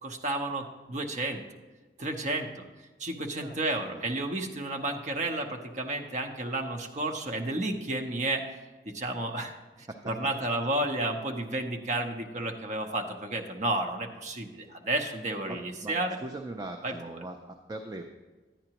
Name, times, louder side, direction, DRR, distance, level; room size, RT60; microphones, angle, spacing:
voice 1, 0.0-1.4 2.0-2.6 3.0-8.4 8.8-9.6 10.0-16.2 16.8-16.9, right 2 dB, 40° right, 3 dB, 0.8 m, -31 dB
voice 2, 15.5-18.1, right 2 dB, 20° right, 3 dB, 0.4 m, -41 dB
10.0 x 9.7 x 2.9 m, 1.3 s
head